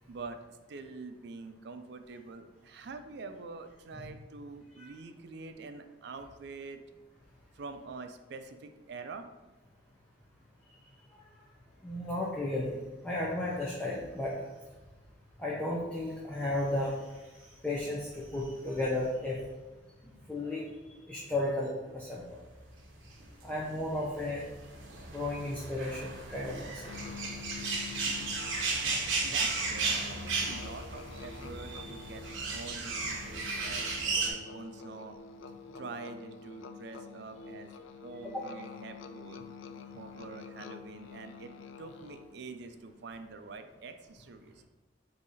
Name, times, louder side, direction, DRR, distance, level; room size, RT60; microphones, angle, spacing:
voice 1, 0.1-0.4 0.7-6.8 7.5-9.3 28.6-35.2 35.7-37.7 38.0-41.5 41.8-44.6, right 4 dB, 60° right, 8 dB, 0.4 m, -46 dB
voice 2, 11.8-12.8 13.0-14.5 15.4-17.0 17.6-19.4 20.3-20.6 20.9-22.3 23.4-24.4 25.1-26.8, left 1 dB, 5° left, -6 dB, 0.6 m, -33 dB
sound 1, 23.2-34.3, right 4 dB, 80° right, 0.8 m, -35 dB
Musical instrument, 26.8-42.4, left 6 dB, 75° left, 0.3 m, -47 dB
4.0 x 2.7 x 4.8 m, 1.2 s
head